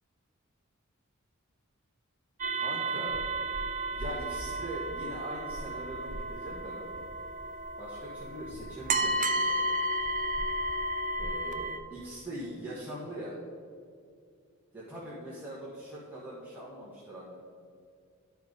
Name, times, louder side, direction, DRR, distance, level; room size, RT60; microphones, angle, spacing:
sound 1, 2.4-11.8, right 1 dB, 40° right, 0.5 m, -33 dB
voice 1, 2.5-3.2 3.9-6.9 7.8-9.6 11.2-13.3 14.7-17.3, right 1 dB, 10° right, -8 dB, 1.5 m, -42 dB
11.5 x 4.5 x 5.2 m, 2.3 s
head